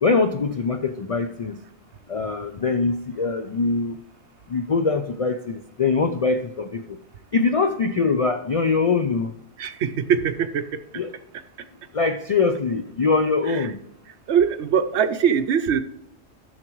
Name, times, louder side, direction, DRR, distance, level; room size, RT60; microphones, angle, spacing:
voice 1, 0.0-1.6 2.1-4.0 4.5-7.0 7.3-9.3 10.9-11.1 11.9-13.8, left 4 dB, 65° left, 7 dB, 0.3 m, -23 dB
voice 2, 9.6-10.8 13.5-13.7 14.3-15.8, right 7 dB, 70° right, 10 dB, 0.9 m, -22 dB
14.5 x 6.5 x 3.0 m, 0.79 s
omnidirectional pair, 1.2 m